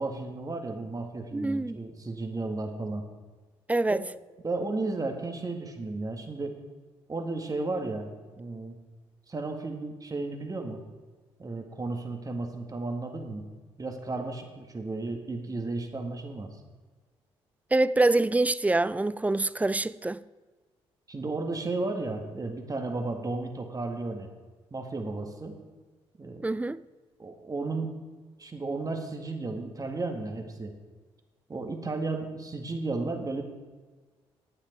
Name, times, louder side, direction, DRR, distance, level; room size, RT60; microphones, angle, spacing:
voice 1, 0.0-3.0 3.9-4.0 4.4-6.6 7.1-8.1 8.4-8.8 9.3-10.8 11.4-13.4 13.8-16.6 21.1-24.3 24.7-25.6 26.2-26.5 27.2-28.0 28.4-30.7 31.5-33.4, right 3 dB, 30° right, 1.9 m, -33 dB
voice 2, 1.3-1.8 3.7-4.0 17.7-20.2 26.4-26.8, right 2 dB, 10° right, 0.4 m, -25 dB
11.0 x 8.8 x 4.6 m
hypercardioid pair, 50°, 12 cm